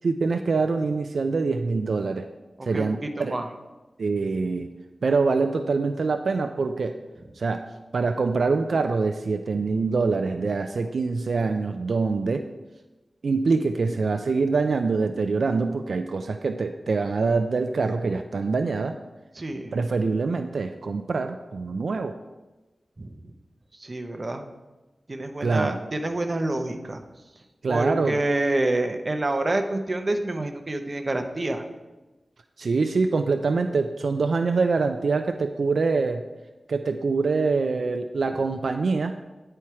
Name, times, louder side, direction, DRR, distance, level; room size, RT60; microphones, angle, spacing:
voice 1, 0.0-2.3 2.7-3.4 4.0-4.7 5.0-7.0 7.4-7.6 7.9-12.4 13.2-19.0 19.7-22.2 25.4-25.8 27.6-28.2 32.6-36.2 36.7-39.2, right 4 dB, 80° right, 7 dB, 0.3 m, -24 dB
voice 2, 2.6-2.9 3.2-3.5 19.4-19.8 23.0-23.1 23.8-24.4 25.1-27.0 27.7-31.6, right 2 dB, 40° right, 5 dB, 0.7 m, -27 dB
9.8 x 4.4 x 4.7 m, 1.1 s
wide cardioid pair, 80°, 0 cm